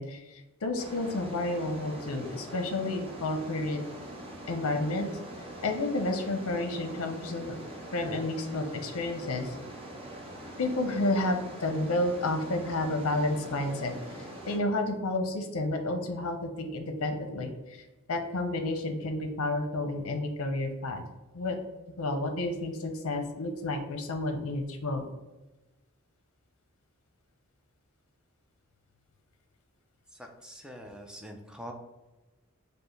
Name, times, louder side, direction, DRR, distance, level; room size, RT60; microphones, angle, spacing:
voice 1, 0.0-3.8 4.5-5.1 5.6-7.5 7.9-9.5 10.6-17.5 18.1-21.0 21.3-21.6 22.0-25.1, left 2 dB, 75° left, 6 dB, 0.7 m, -31 dB
sound 1, 0.8-14.6, right 1 dB, 25° right, 0.8 m, -43 dB
voice 2, 30.1-31.7, equal, 5° right, 3 dB, 0.4 m, -44 dB
5.2 x 2.1 x 3.2 m, 1.1 s
head